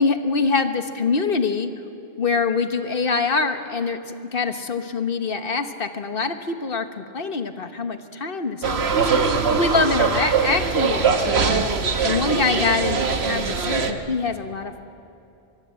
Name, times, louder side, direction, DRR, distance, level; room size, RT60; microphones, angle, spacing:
voice 1, 0.0-1.7 2.2-9.0 9.5-14.8, left 4 dB, 60° left, 7 dB, 1.5 m, -24 dB
sound 1, 8.6-13.9, right 5 dB, 85° right, 1.5 m, -22 dB
24.0 x 23.5 x 7.7 m, 2.9 s
omnidirectional pair, 1.0 m